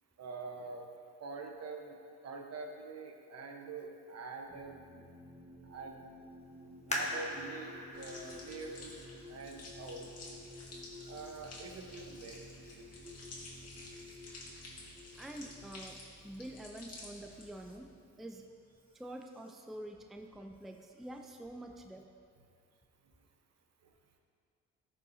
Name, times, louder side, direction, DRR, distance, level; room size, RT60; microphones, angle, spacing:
voice 1, 0.2-0.9 1.2-2.0 2.2-4.8 5.6-6.0 6.9-10.1 11.1-12.7, right 3 dB, 55° right, 2 dB, 1.1 m, -45 dB
sound 1, 4.5-19.6 20.7-21.4, left 2 dB, 15° right, 1.2 m, -54 dB
sound 2, 6.9-10.3 10.9-11.0 11.6-12.0 12.4-12.5, left 1 dB, 20° left, 1.5 m, -42 dB
sound 3, 7.9-17.8, left 2 dB, 55° left, 1.9 m, -52 dB
voice 2, 15.2-16.0 16.2-17.9 18.2-18.4 18.9-22.0, right 1 dB, ahead, 3 dB, 0.5 m, -47 dB
14.0 x 5.6 x 2.7 m, 2.3 s
cardioid pair, 90°, 30 cm